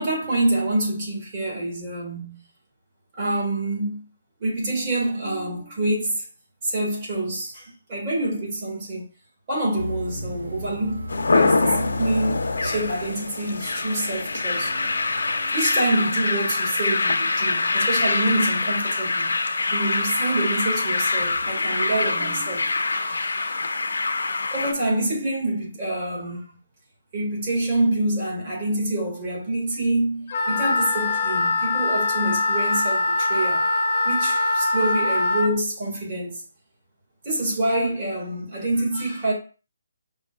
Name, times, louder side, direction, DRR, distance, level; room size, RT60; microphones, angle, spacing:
voice 1, 0.0-2.4 3.2-4.0 4.4-6.2 6.6-9.0 9.5-14.7 15.5-19.3 19.7-23.6 24.5-26.4 27.1-33.6 34.0-36.4 37.2-39.3, right 1 dB, 35° right, 1.8 m, -26 dB
sound 1, 9.8-15.5, left 1 dB, 80° right, 0.7 m, -35 dB
sound 2, 11.1-24.7, left 3 dB, 85° left, 0.5 m, -24 dB
Wind instrument woodwind instrument, 30.3-35.5, left 3 dB, 45° left, 0.7 m, -23 dB
5.4 x 2.3 x 2.3 m
hypercardioid pair, 160°, 0 cm